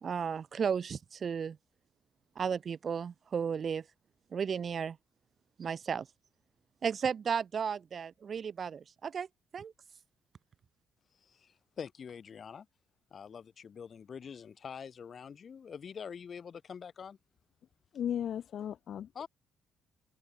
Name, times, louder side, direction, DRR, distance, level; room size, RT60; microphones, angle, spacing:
voice 1, 0.0-1.6 2.4-3.8 4.3-5.0 5.6-6.1 6.8-9.3 9.5-9.7, right 7 dB, 50° right, 0.8 m, -34 dB
voice 2, 11.2-12.7 13.1-17.2 19.1-19.3, left 7 dB, 50° left, 7.7 m, -45 dB
voice 3, 17.9-19.2, left 9 dB, 65° left, 1.4 m, -36 dB
cardioid pair, 90°, 0 cm